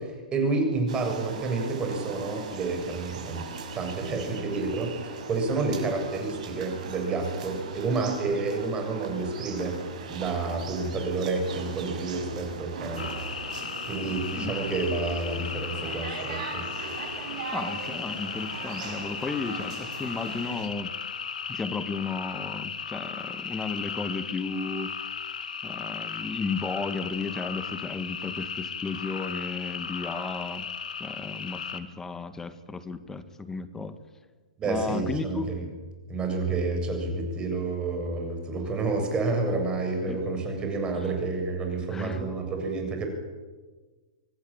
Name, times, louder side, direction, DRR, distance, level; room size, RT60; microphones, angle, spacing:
voice 1, 0.0-3.4 3.7-9.8 10.1-13.1 13.9-16.6 34.6-35.6 36.1-43.1, right 3 dB, 20° right, 4 dB, 7.4 m, -29 dB
sound 1, 0.9-20.7, right 5 dB, 65° right, 6.5 m, -39 dB
sound 2, 13.0-31.8, left 6 dB, 80° left, 2.4 m, -36 dB
voice 2, 17.5-20.9 21.5-24.9 25.6-30.6 31.0-34.0 34.6-35.4 40.1-40.2 41.9-42.3, left 4 dB, 10° left, 11 dB, 1.9 m, -34 dB
25.5 x 19.0 x 9.0 m, 1.3 s
hypercardioid pair, 125°, 4 cm